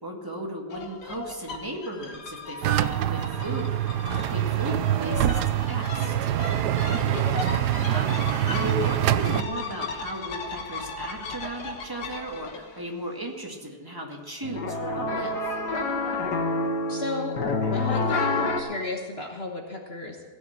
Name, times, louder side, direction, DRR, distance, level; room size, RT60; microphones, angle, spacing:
voice 1, 0.0-6.1 7.9-8.2 8.5-15.6, right 1 dB, 15° right, 0 dB, 2.0 m, -36 dB
sound 1, 0.7-12.8 14.4-18.6, left 3 dB, 75° left, 1.9 m, -32 dB
sound 2, 2.6-9.4, right 12 dB, 80° right, 1.2 m, -25 dB
voice 2, 16.9-17.4 17.7-20.2, left 2 dB, 40° left, 1 dB, 1.4 m, -33 dB
17.0 x 7.1 x 8.5 m, 1.5 s
omnidirectional pair, 1.7 m